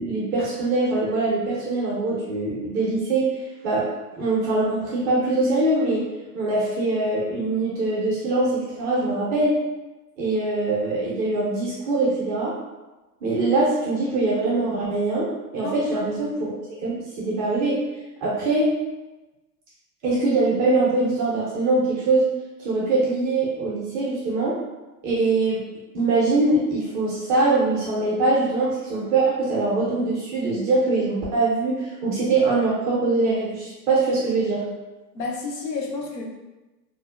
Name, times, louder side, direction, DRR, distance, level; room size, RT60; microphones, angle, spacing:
voice 1, 0.0-3.3 3.6-3.9 4.2-6.0 6.3-9.5 10.2-12.5 13.2-15.3 15.5-16.5 16.8-17.8 18.2-18.7 20.0-22.2 22.6-24.6 25.0-25.6 25.9-34.6, right 2 dB, 20° right, -7 dB, 0.4 m, -23 dB
voice 2, 35.1-36.2, left 4 dB, 90° left, -1 dB, 0.7 m, -30 dB
2.5 x 2.0 x 2.4 m, 1.1 s
hypercardioid pair, 110°, 49 cm